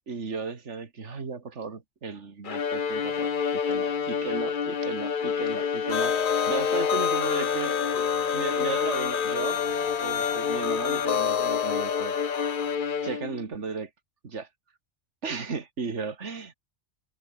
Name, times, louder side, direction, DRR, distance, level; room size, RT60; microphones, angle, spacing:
voice 1, 0.1-7.8 8.3-9.6 10.0-12.1 13.0-13.9 14.2-14.5 15.2-16.5, right 5 dB, 75° right, 2.4 m, -35 dB
Bowed string instrument, 2.4-13.5, left 6 dB, 45° left, 1.1 m, -28 dB
sound 1, 5.9-12.8, left 8 dB, 65° left, 1.2 m, -30 dB
omnidirectional pair, 1.2 m